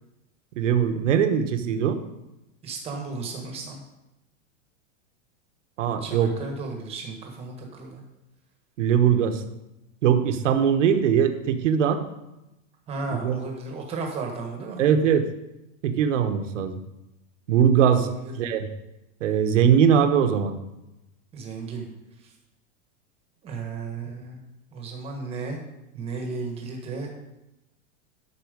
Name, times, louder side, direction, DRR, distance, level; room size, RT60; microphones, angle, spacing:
voice 1, 0.6-2.0 5.8-6.3 8.8-9.4 10.0-12.0 13.1-13.4 14.8-15.3 15.8-16.8 17.5-18.1 18.4-18.7 19.2-20.5, right 8 dB, 65° right, 7 dB, 1.3 m, -21 dB
voice 2, 2.6-3.8 6.0-8.0 12.9-14.9 17.9-18.3 21.3-21.9 22.2-22.3 23.4-24.4 24.7-25.6 25.9-27.1, right 4 dB, 15° right, 1 dB, 1.4 m, -34 dB
13.0 x 6.0 x 5.2 m, 0.93 s
supercardioid pair, 180°, 40 cm